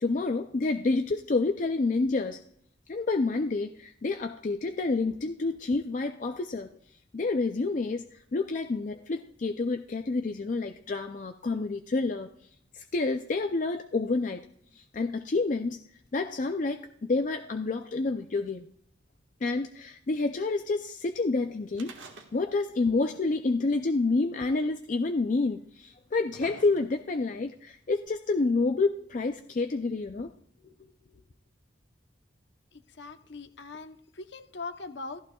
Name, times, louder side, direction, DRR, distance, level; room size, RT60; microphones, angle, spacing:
voice 1, 0.0-2.4 2.9-6.7 7.1-12.3 12.7-14.5 14.8-15.8 16.1-18.7 19.4-22.0 22.3-30.3, left 3 dB, 40° left, 0.4 m, -28 dB
sound 1, 21.7-22.8 23.0-23.1 24.1-24.2 25.1-25.2 25.9-27.2 28.1-28.2, right 3 dB, 80° right, 1.4 m, -49 dB
voice 2, 33.0-35.2, left 3 dB, 65° left, 0.8 m, -41 dB
14.5 x 14.0 x 2.3 m
head